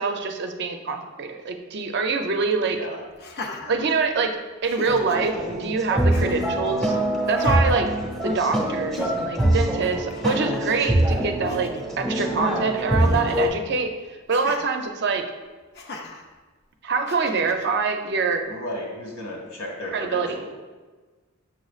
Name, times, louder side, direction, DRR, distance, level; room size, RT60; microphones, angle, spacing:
voice 1, 0.0-2.8 3.7-4.4 4.6-7.0 7.3-7.9 8.2-13.9 14.3-15.2 16.8-18.5 19.9-20.4, right 4 dB, 50° right, 5 dB, 0.5 m, -25 dB
Laughter, 3.2-4.3 4.6-5.3 6.1-6.6 7.3-8.5 8.9-9.2 10.1-10.7 11.2-11.3 11.5-11.8 13.0-13.6 14.3-14.6 15.7-16.2 17.1-17.7, left 2 dB, 50° left, 0.5 m, -37 dB
sound 1, 4.9-13.5, right 1 dB, 5° left, 0.9 m, -24 dB
voice 2, 18.5-20.5, left 1 dB, 80° left, -1 dB, 1.7 m, -34 dB
6.6 x 6.2 x 2.4 m, 1.3 s
head